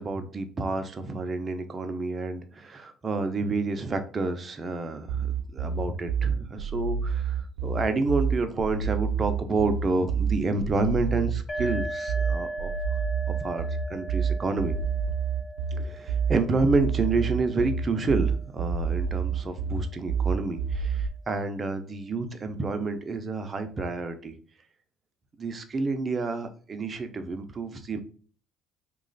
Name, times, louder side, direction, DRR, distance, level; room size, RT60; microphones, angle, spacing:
voice 1, 0.0-12.7 13.3-14.7 15.7-24.3 25.4-28.0, right 3 dB, 30° right, 8 dB, 0.6 m, -29 dB
sound 1, 5.1-21.1, right 6 dB, 85° right, 0.6 m, -28 dB
sound 2, 11.5-19.0, right 1 dB, 35° left, 0.6 m, -39 dB
3.1 x 2.4 x 3.9 m, 0.42 s
cardioid pair, 105°, 0 cm